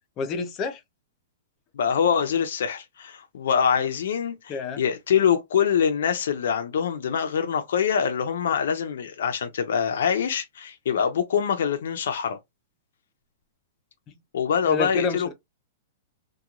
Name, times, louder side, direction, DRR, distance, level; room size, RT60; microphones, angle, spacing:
voice 1, 0.2-0.8 4.5-4.8 14.1-14.2 14.7-15.3, left 4 dB, 20° left, 0.5 m, -28 dB
voice 2, 1.7-12.4 14.3-15.3, left 7 dB, 65° left, 0.5 m, -24 dB
2.9 x 2.2 x 2.4 m
supercardioid pair, 175°, 0 cm